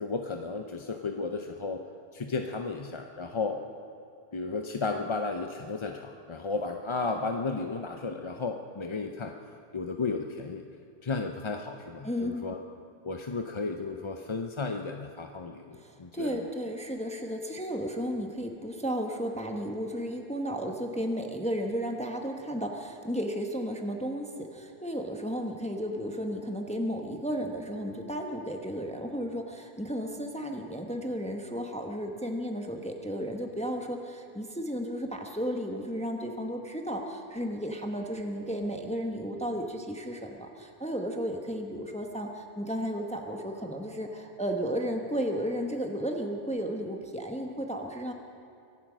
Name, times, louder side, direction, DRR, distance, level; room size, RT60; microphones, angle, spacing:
voice 1, 0.0-1.8 2.1-3.6 4.3-9.3 9.7-10.6 11.0-12.6 13.0-16.4, left 3 dB, 35° left, 4 dB, 0.6 m, -33 dB
voice 2, 12.0-12.5 15.7-48.1, equal, 5° left, 2 dB, 1.0 m, -33 dB
24.0 x 9.0 x 6.2 m, 2.6 s
omnidirectional pair, 1.1 m